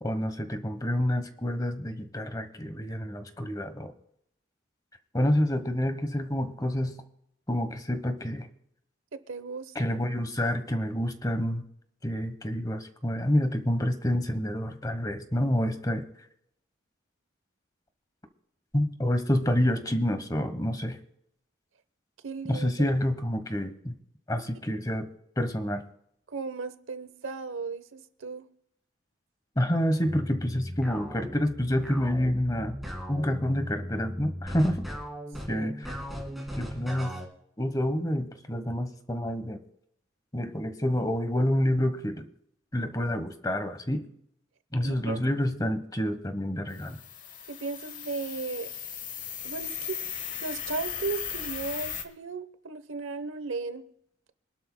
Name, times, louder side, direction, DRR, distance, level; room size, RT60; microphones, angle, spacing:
voice 1, 0.0-3.9 5.1-7.0 7.5-8.5 9.7-11.6 12.0-16.0 18.7-21.0 22.5-23.9 24.3-25.1 25.4-25.8 29.6-32.8 33.1-34.9 35.5-36.0 36.6-37.1 37.6-39.6 40.3-42.2 42.7-44.1 44.7-47.0, equal, 20° left, 9 dB, 1.0 m, -28 dB
voice 2, 9.1-9.7 22.2-22.7 26.3-28.4 35.5-35.7 44.8-45.2 47.5-48.7 49.4-53.8, right 4 dB, 80° right, 12 dB, 0.9 m, -36 dB
sound 1, 30.0-37.3, equal, ahead, 1.8 m, -38 dB
sound 2, 46.7-52.0, left 8 dB, 40° left, 1.2 m, -37 dB
25.5 x 12.0 x 2.2 m, 0.75 s
head